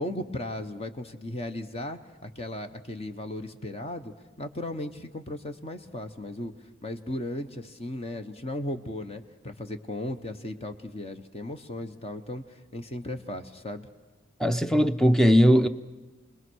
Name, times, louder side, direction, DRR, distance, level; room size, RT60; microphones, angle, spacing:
voice 1, 0.0-6.5 6.8-13.9, left 1 dB, 30° left, 8 dB, 1.1 m, -36 dB
voice 2, 14.4-15.7, equal, ahead, 10 dB, 0.7 m, -19 dB
29.5 x 21.0 x 6.3 m, 1.2 s
head